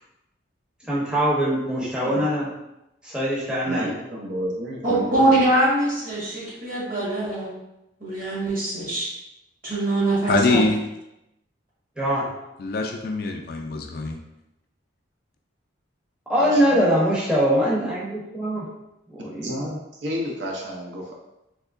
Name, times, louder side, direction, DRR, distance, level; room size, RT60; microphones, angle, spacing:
voice 1, 0.9-2.5 3.0-3.9 12.0-12.3 16.3-18.6 19.1-19.5, equal, 5° right, -7 dB, 0.6 m, -22 dB
voice 2, 1.8-2.3 3.6-5.3 16.4-17.1 19.1-21.2, equal, 60° right, -2 dB, 0.5 m, -32 dB
voice 3, 4.8-7.5 8.0-9.1 9.6-10.6, right 2 dB, 45° right, -7 dB, 1.4 m, -23 dB
voice 4, 10.3-10.8 12.6-14.2, left 3 dB, 50° left, 3 dB, 0.3 m, -23 dB
3.5 x 2.9 x 2.4 m, 0.90 s
head